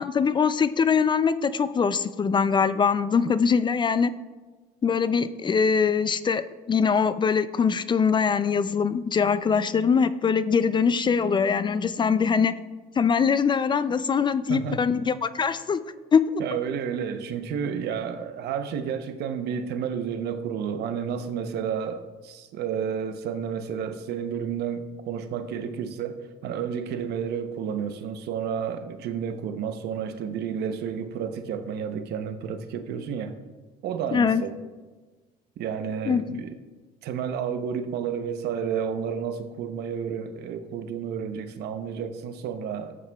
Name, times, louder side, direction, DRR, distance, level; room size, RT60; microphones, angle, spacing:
voice 1, 0.0-4.1 4.8-6.4 6.7-12.5 13.0-15.8 16.1-16.2 34.1-34.4 36.1-36.4, left 6 dB, 30° left, 0.3 m, -22 dB
voice 2, 14.5-14.8 16.4-33.3 33.8-34.6 35.6-36.5 37.0-43.0, right 7 dB, 75° right, 0.8 m, -31 dB
13.5 x 8.5 x 2.3 m
cardioid pair, 110°, 17 cm